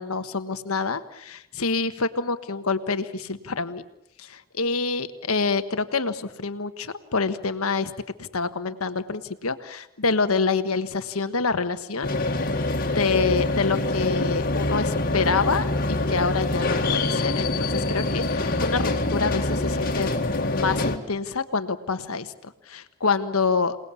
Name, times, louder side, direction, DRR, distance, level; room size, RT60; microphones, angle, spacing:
voice 1, 0.0-3.8 4.2-7.9 8.2-12.1 12.6-20.1 20.4-23.8, left 4 dB, 75° left, 10 dB, 1.4 m, -27 dB
sound 1, 12.0-21.0, left 2 dB, 40° left, 2.0 m, -25 dB
28.0 x 19.0 x 8.4 m, 0.80 s
head